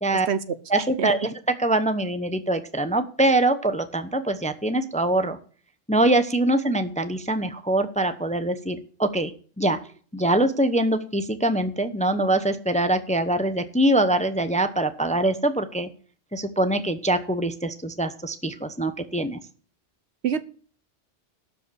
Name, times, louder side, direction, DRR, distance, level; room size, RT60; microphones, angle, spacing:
voice 1, 0.1-1.1 20.2-20.4, right 7 dB, 65° right, 14 dB, 1.1 m, -27 dB
voice 2, 0.7-1.3 1.6-5.4 5.9-9.3 9.6-9.8 10.1-15.9 16.3-19.4, right 1 dB, 5° left, 10 dB, 0.7 m, -23 dB
12.5 x 5.3 x 8.3 m, 0.43 s
omnidirectional pair, 1.2 m